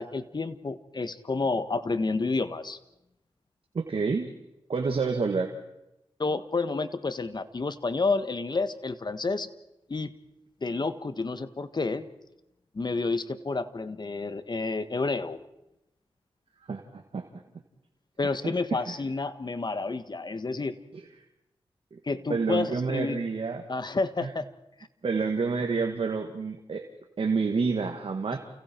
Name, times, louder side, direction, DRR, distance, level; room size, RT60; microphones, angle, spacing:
voice 1, 0.0-2.8 6.2-9.5 9.9-10.1 10.6-12.1 12.7-15.4 18.2-20.8 22.0-23.2 23.7-24.4, left 3 dB, 45° left, 12 dB, 1.5 m, -30 dB
voice 2, 3.7-4.3 4.7-5.6 16.7-17.3 18.4-19.0 20.9-21.0 21.9-22.0 22.3-23.6 24.2-24.3 25.0-26.9 27.2-28.4, right 4 dB, 70° right, 4 dB, 1.9 m, -28 dB
29.5 x 29.0 x 4.6 m, 0.91 s
cardioid pair, 55°, 10 cm